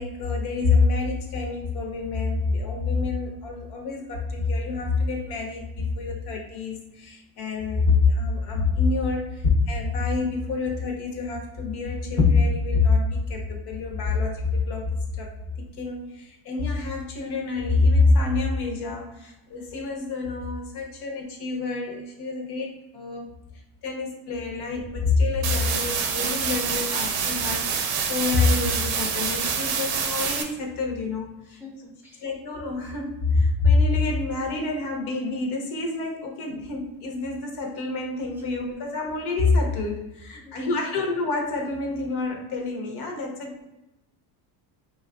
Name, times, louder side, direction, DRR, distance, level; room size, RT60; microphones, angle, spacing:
voice 1, 0.0-15.3 15.8-23.3 23.8-31.6 32.2-43.5, left 3 dB, 60° left, 1 dB, 0.9 m, -26 dB
sound 1, 25.4-30.4, right 6 dB, 60° right, 0.6 m, -26 dB
voice 2, 31.6-32.3 40.4-40.8 43.6-43.7, left 2 dB, 5° right, -2 dB, 0.7 m, -47 dB
3.1 x 2.4 x 2.3 m, 0.94 s
supercardioid pair, 105°, 43 cm